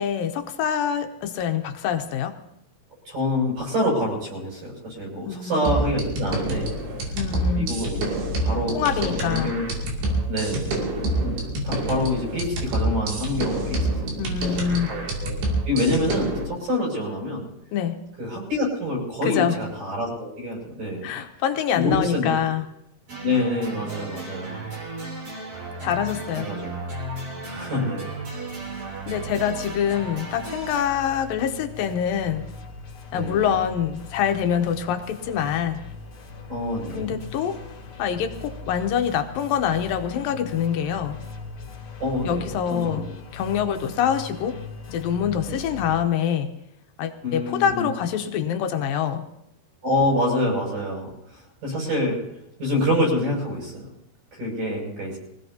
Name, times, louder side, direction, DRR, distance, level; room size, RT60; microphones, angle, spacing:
voice 1, 0.0-2.3 5.3-5.7 7.2-7.7 8.7-9.5 14.2-14.9 17.7-18.0 19.3-19.6 21.0-22.6 25.8-26.6 29.1-32.5 33.1-35.8 36.9-37.6 38.0-41.2 42.3-43.0 43.3-44.6 44.9-46.5 47.0-49.2, left 8 dB, 70° left, 6 dB, 2.4 m, -25 dB
voice 2, 3.1-6.8 7.3-9.8 10.3-10.8 11.2-11.3 11.6-14.1 14.9-15.3 15.7-17.5 18.2-21.1 21.7-22.5 23.2-24.7 26.4-26.7 27.4-28.4 33.1-33.5 36.5-37.1 42.0-43.1 45.5-45.7 47.2-47.9 49.8-52.2 52.6-53.9 54.3-55.2, left 1 dB, 55° right, -3 dB, 9.0 m, -27 dB
sound 1, 5.7-16.4, right 1 dB, 85° right, 4.9 m, -27 dB
sound 2, 23.1-30.8, right 2 dB, 35° right, 3.9 m, -35 dB
sound 3, 28.5-45.9, left 4 dB, 40° left, 3.2 m, -40 dB
24.5 x 16.5 x 2.9 m, 0.80 s
omnidirectional pair, 4.6 m